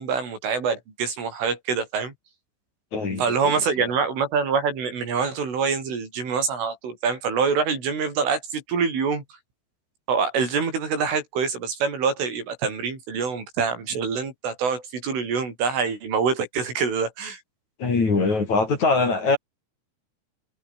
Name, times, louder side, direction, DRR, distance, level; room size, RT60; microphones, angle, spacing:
voice 1, 0.0-2.1 3.2-9.2 10.1-17.4, right 5 dB, 80° right, 9.2 m, -25 dB
voice 2, 2.9-3.5 3.8-3.9 17.8-19.4, left 3 dB, 40° left, 5.9 m, -22 dB
omnidirectional pair, 5.6 m